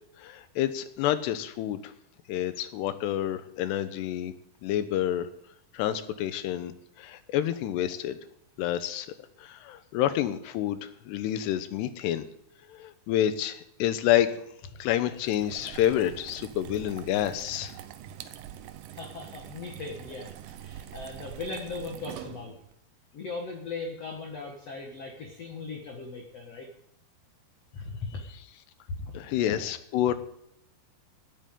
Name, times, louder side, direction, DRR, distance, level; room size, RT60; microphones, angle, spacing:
voice 1, 0.2-1.9 2.3-4.3 4.6-5.3 5.7-6.7 7.0-8.2 8.6-9.1 9.4-12.3 12.7-14.4 14.8-17.7 29.1-30.1, left 11 dB, 80° left, 11 dB, 3.0 m, -28 dB
sound 1, 15.1-22.7, right 12 dB, 75° right, 2.1 m, -44 dB
voice 2, 18.9-22.6 23.1-26.7 27.7-28.2 28.9-29.7, left 3 dB, 55° left, 1 dB, 1.8 m, -38 dB
17.5 x 12.5 x 3.8 m, 0.75 s
omnidirectional pair, 4.9 m